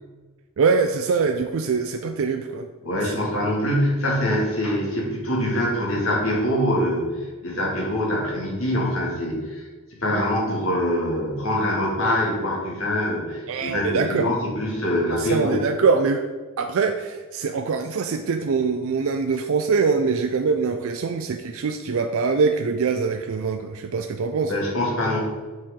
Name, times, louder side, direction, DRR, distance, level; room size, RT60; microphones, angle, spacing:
voice 1, 0.6-2.7 3.1-3.3 13.5-14.3 15.1-16.2 16.6-24.5, right 5 dB, 65° right, 5 dB, 0.4 m, -23 dB
voice 2, 2.8-15.7 24.5-25.2, left 1 dB, 60° left, -3 dB, 2.1 m, -24 dB
7.4 x 4.5 x 3.7 m, 1.4 s
head